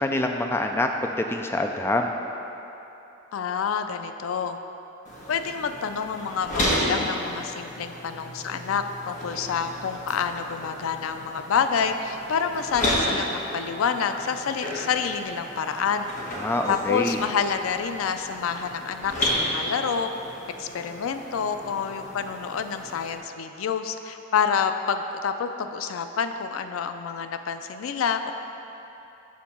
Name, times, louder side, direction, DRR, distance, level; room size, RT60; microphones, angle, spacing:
voice 1, 0.0-2.1 16.4-17.2, left 1 dB, 10° left, 4 dB, 0.3 m, -26 dB
voice 2, 3.3-4.6 5.3-16.1 16.7-20.1 20.6-28.3, left 6 dB, 85° left, 8 dB, 0.4 m, -28 dB
sound 1, 5.0-23.1, equal, 40° left, 1.4 m, -33 dB
7.2 x 3.7 x 6.0 m, 2.9 s
head